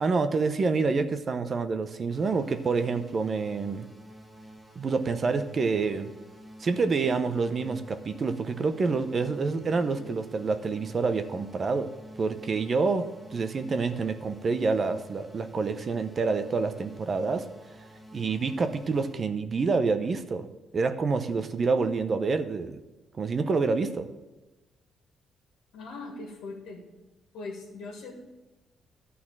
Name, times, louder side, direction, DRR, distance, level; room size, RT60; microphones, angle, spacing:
voice 1, 0.0-3.9 4.8-6.1 6.6-11.9 12.2-17.5 18.1-20.5 20.7-22.8 23.2-24.1, right 4 dB, 40° right, 9 dB, 0.7 m, -27 dB
sound 1, 2.1-19.1, right 1 dB, ahead, 1.2 m, -49 dB
voice 2, 25.7-26.8 27.3-28.1, left 3 dB, 85° left, -1 dB, 1.8 m, -40 dB
12.0 x 4.2 x 7.3 m, 1.1 s
cardioid pair, 90°, 0 cm